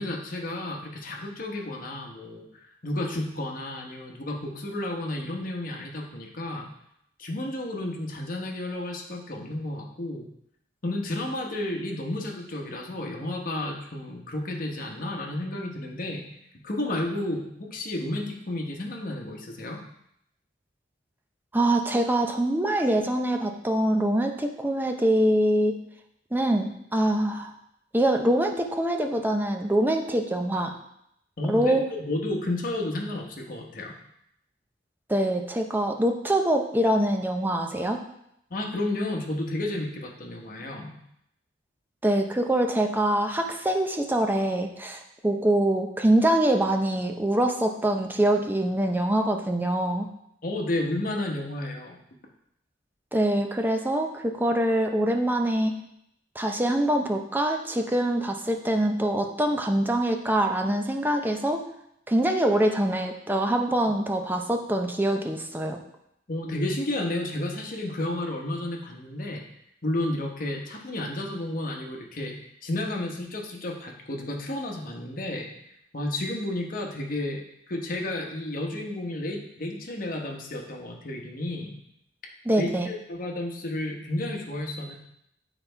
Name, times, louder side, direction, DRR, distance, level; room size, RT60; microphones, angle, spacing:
voice 1, 0.0-6.7 7.2-10.2 10.8-16.2 16.6-19.8 31.4-33.9 38.5-40.9 50.4-52.0 66.3-69.4 69.8-72.4 72.6-75.5 75.9-77.4 77.7-81.8 82.6-84.9, left 1 dB, 50° left, 0 dB, 1.1 m, -32 dB
voice 2, 21.5-25.8 26.3-27.5 27.9-30.7 31.5-31.8 35.1-38.0 42.0-50.1 53.1-55.8 56.4-61.6 62.1-65.8 82.4-82.9, right 1 dB, 10° right, 3 dB, 0.6 m, -24 dB
7.6 x 4.0 x 4.5 m, 0.76 s
head